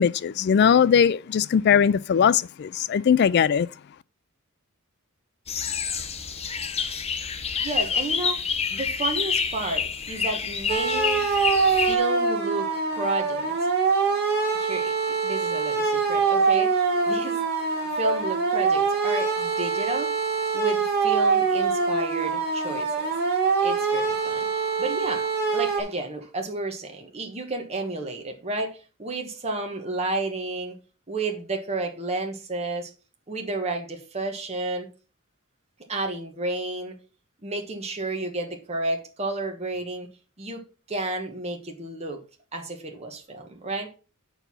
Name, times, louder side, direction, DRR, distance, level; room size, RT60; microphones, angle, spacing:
voice 1, 0.0-3.7, left 7 dB, 50° left, 0.3 m, -20 dB
sound 1, 5.5-12.0, left 6 dB, 30° left, 0.8 m, -28 dB
voice 2, 7.6-11.2 11.6-13.7 14.5-15.0 15.2-17.4 17.9-20.1 20.5-23.1 23.6-30.8 31.1-32.9 33.3-34.9 35.9-37.0 37.4-40.1 40.4-42.2 42.5-43.9, right 2 dB, 30° right, 1.2 m, -32 dB
sound 2, 10.7-25.8, right 5 dB, 50° right, 2.1 m, -24 dB
7.9 x 4.7 x 5.5 m
head